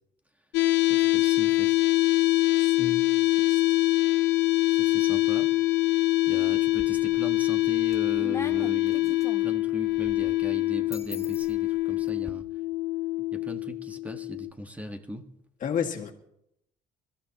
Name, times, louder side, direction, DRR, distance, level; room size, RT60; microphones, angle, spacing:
sound 1, 0.5-14.5, left 18 dB, 85° left, 0.7 m, -24 dB
voice 1, 0.9-1.7 2.5-2.7 4.7-5.5 6.3-12.4 13.3-15.3, equal, 10° right, 5 dB, 1.5 m, -39 dB
voice 2, 2.6-3.0 3.5-3.6 15.6-16.1, left 8 dB, 50° left, 2 dB, 2.0 m, -31 dB
sound 2, 6.5-7.3 7.7-12.3, left 3 dB, 15° left, 1.0 m, -42 dB
28.0 x 14.0 x 3.0 m, 0.79 s
cardioid pair, 110°, 17 cm